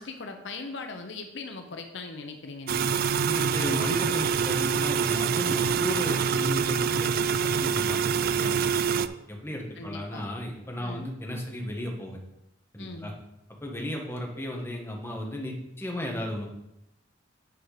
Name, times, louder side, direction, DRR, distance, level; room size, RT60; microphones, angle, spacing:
voice 1, 0.0-3.0 9.8-10.3 10.8-11.1 12.8-13.1, left 3 dB, 70° left, 5 dB, 0.8 m, -39 dB
sound 1, 2.7-9.1, right 6 dB, 50° right, 0.3 m, -25 dB
voice 2, 3.3-12.2 12.7-13.1 13.6-16.5, equal, 15° left, -1 dB, 1.4 m, -34 dB
9.0 x 4.6 x 5.0 m, 0.85 s
head